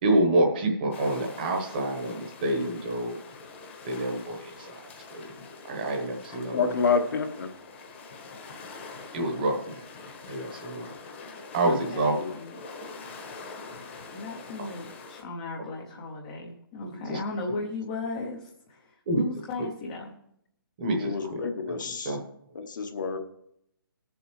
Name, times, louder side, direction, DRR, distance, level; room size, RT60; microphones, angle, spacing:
voice 1, 0.0-3.2 3.8-4.7 5.1-5.3 5.7-6.7 9.1-9.8 10.3-10.9 11.5-12.1 16.8-17.2 19.1-19.2 19.6-19.7 20.8-21.4 21.7-22.2, right 1 dB, 25° right, 1.1 m, -27 dB
sound 1, 0.9-15.2, left 4 dB, 30° left, 1.1 m, -44 dB
voice 2, 6.5-7.5 12.1-12.3 21.0-22.2 22.5-23.2, left 5 dB, 55° left, 1.1 m, -28 dB
voice 3, 11.6-12.6 14.1-20.2, left 3 dB, 15° left, 0.6 m, -36 dB
19.5 x 7.0 x 3.2 m
hypercardioid pair, 175°, 12 cm